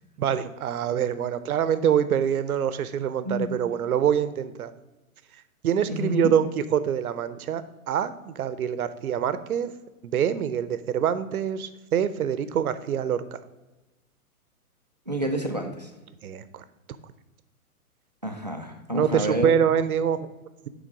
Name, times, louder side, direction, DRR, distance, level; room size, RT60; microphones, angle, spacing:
voice 1, 0.2-4.7 5.6-9.7 10.0-13.4 16.2-16.6 18.9-20.3, right 8 dB, 75° right, 13 dB, 0.7 m, -25 dB
voice 2, 3.2-3.6 5.9-6.3 15.1-15.9 18.2-19.5, equal, 30° right, 3 dB, 0.4 m, -29 dB
9.0 x 3.7 x 4.7 m, 1.1 s
hypercardioid pair, 180°, 44 cm